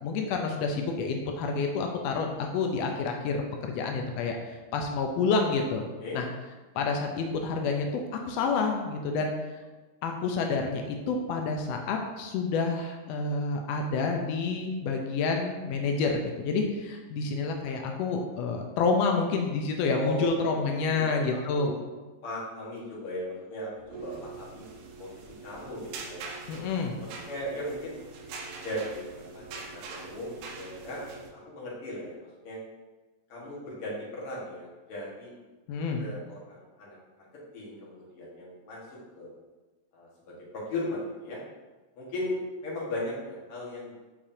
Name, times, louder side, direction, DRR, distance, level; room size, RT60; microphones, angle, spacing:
voice 1, 0.0-5.8 6.1-6.2 6.7-9.3 10.0-21.7 26.5-26.9 35.7-36.0, left 4 dB, 85° left, 3 dB, 1.5 m, -29 dB
voice 2, 20.5-21.2 21.5-21.7 22.2-26.2 27.0-28.0 28.6-32.6 33.3-35.3 36.0-37.2 37.5-38.8 39.1-39.3 39.9-41.4 42.0-44.0, left 1 dB, 50° left, -6 dB, 2.3 m, -37 dB
sound 1, 23.8-31.3, right 4 dB, 80° right, 2.2 m, -43 dB
7.1 x 4.8 x 2.7 m, 1.2 s
omnidirectional pair, 3.5 m